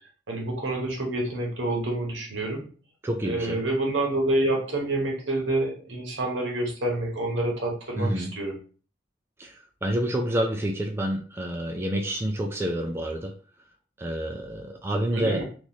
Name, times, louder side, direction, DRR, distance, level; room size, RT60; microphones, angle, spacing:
voice 1, 0.3-2.7 3.2-8.5 15.1-15.4, right 1 dB, 80° right, 0 dB, 1.2 m, -28 dB
voice 2, 3.0-3.6 8.0-8.3 9.4-13.3 14.0-15.4, right 1 dB, 15° right, 2 dB, 0.3 m, -28 dB
3.1 x 2.5 x 4.0 m, 0.41 s
head